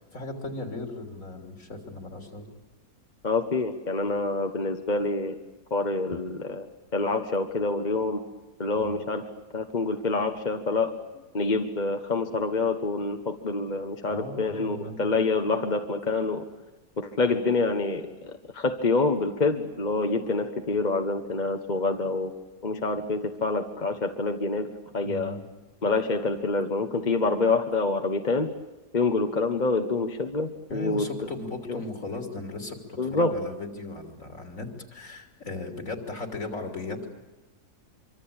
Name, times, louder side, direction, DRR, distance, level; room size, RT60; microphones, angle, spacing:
voice 1, 0.1-2.5 8.8-9.0 11.1-11.3 14.1-15.0 25.0-25.4 30.7-37.1, left 2 dB, 50° left, 4 dB, 3.9 m, -37 dB
voice 2, 3.2-5.4 5.7-6.7 6.9-8.2 8.6-9.3 9.5-11.0 11.3-16.4 17.0-22.3 22.6-24.7 24.9-25.4 25.8-28.5 28.9-31.1 31.7-31.8 33.0-33.3, left 3 dB, 30° left, 6 dB, 1.2 m, -27 dB
25.5 x 25.0 x 8.8 m, 1.1 s
omnidirectional pair, 1.7 m